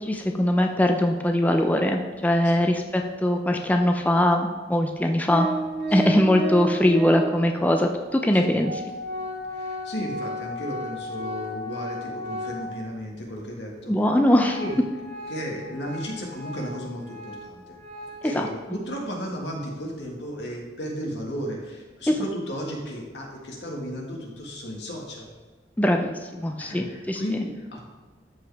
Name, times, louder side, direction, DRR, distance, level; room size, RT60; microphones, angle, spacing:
voice 1, 0.0-5.5 5.9-8.8 13.9-14.6 18.3-18.5 22.1-22.2 25.8-27.2, left 1 dB, 10° left, 3 dB, 0.4 m, -21 dB
Organ, 5.3-7.5 8.3-8.4 8.6-13.0 13.4-13.5 13.9-18.3, right 1 dB, 90° right, 2.1 m, -33 dB
voice 2, 9.5-13.9 14.6-14.8 15.3-17.8 18.2-25.3 26.6-27.8, equal, 85° left, 0 dB, 1.7 m, -34 dB
12.5 x 4.8 x 3.4 m, 1.4 s
head